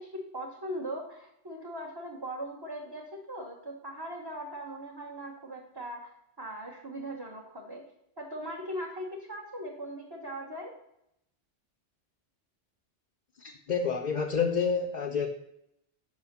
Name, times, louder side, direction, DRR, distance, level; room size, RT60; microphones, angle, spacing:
voice 1, 0.0-6.1 6.4-7.8 8.2-10.7, right 1 dB, 20° right, 0 dB, 0.9 m, -39 dB
voice 2, 13.4-15.3, left 5 dB, 50° left, 4 dB, 0.7 m, -29 dB
5.4 x 5.2 x 6.5 m, 0.79 s
omnidirectional pair, 1.2 m